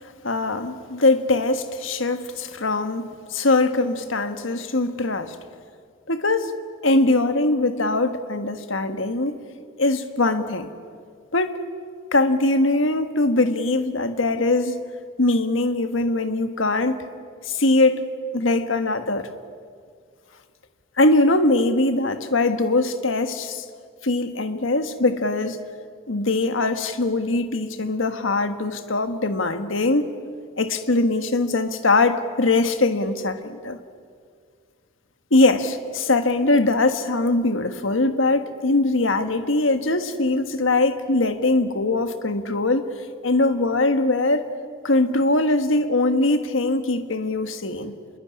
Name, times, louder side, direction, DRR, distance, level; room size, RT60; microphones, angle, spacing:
voice 1, 0.2-5.4 6.1-6.5 6.8-9.4 9.8-10.7 11.3-11.6 12.1-14.8 15.2-17.0 17.4-19.3 21.0-23.6 24.0-25.6 26.1-30.1 30.6-33.8 35.3-42.9 43.2-44.5 44.8-48.0, left 2 dB, 85° left, 9 dB, 1.5 m, -21 dB
26.5 x 22.5 x 9.7 m, 2.1 s
head